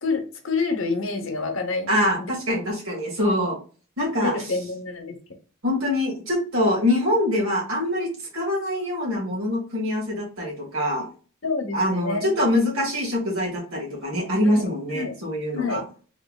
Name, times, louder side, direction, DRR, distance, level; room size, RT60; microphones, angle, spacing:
voice 1, 0.0-2.3 4.2-5.2 11.4-12.5 14.5-15.2 15.5-15.8, left 4 dB, 70° left, 5 dB, 0.8 m, -28 dB
voice 2, 1.9-3.6 4.0-4.3 5.6-11.1 11.7-15.8, left 1 dB, 90° right, -2 dB, 1.8 m, -24 dB
3.5 x 3.2 x 2.3 m, 0.37 s
head